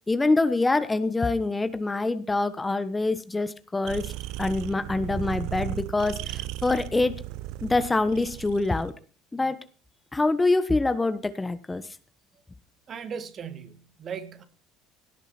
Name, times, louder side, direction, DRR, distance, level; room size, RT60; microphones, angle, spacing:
voice 1, 0.1-4.1 4.4-7.2 7.6-8.9 9.3-9.6 10.1-11.8, left 2 dB, 20° left, 1.3 m, -25 dB
sound 1, 3.9-8.9, right 15 dB, 65° right, 0.7 m, -36 dB
voice 2, 12.9-14.4, right 7 dB, 45° right, 1.9 m, -37 dB
17.5 x 10.5 x 4.4 m
hypercardioid pair, 65°, 0 cm